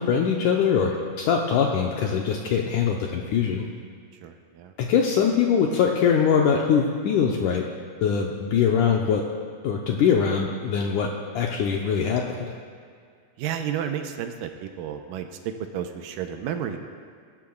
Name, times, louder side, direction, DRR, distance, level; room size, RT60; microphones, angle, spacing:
voice 1, 0.0-3.7 4.8-7.6 8.0-9.2 9.6-11.1 11.4-12.2, left 7 dB, 75° left, 0 dB, 2.0 m, -22 dB
voice 2, 4.2-4.7 13.4-16.8, right 9 dB, 80° right, 6 dB, 2.3 m, -32 dB
22.5 x 12.0 x 2.3 m, 2.1 s
omnidirectional pair, 4.1 m